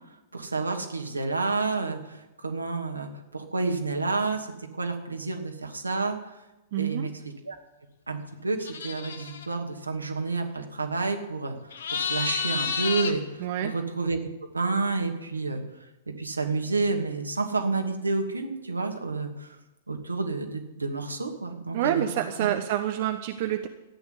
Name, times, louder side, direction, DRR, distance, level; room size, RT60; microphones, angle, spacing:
voice 1, 0.3-4.5 4.8-6.2 6.8-7.1 7.4-7.6 8.1-11.6 11.9-14.2 14.5-15.6 16.1-19.6 19.9-22.1 22.4-22.5, right 3 dB, 85° right, 3 dB, 2.5 m, -29 dB
voice 2, 6.7-7.1 13.4-13.7 21.7-23.7, right 11 dB, 50° right, 7 dB, 1.1 m, -27 dB
sound 1, 8.6-9.5 11.7-13.1, left 6 dB, 65° left, 1.6 m, -30 dB
14.0 x 9.4 x 9.9 m, 1.0 s
figure-of-eight pair, 105°, 0 cm